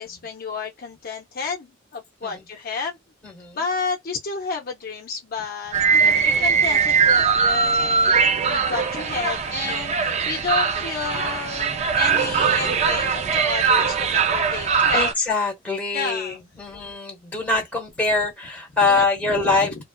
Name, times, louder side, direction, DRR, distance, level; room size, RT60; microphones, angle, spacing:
voice 1, 0.0-3.0 3.6-15.1 15.9-16.4 18.8-19.7, left 5 dB, 45° left, 0.6 m, -31 dB
voice 2, 3.2-3.6 6.0-6.4 9.6-9.9 14.9-19.8, left 3 dB, 5° left, 1.1 m, -24 dB
sound 1, 5.7-15.1, right 5 dB, 35° right, 0.4 m, -21 dB
2.8 x 2.3 x 2.2 m
head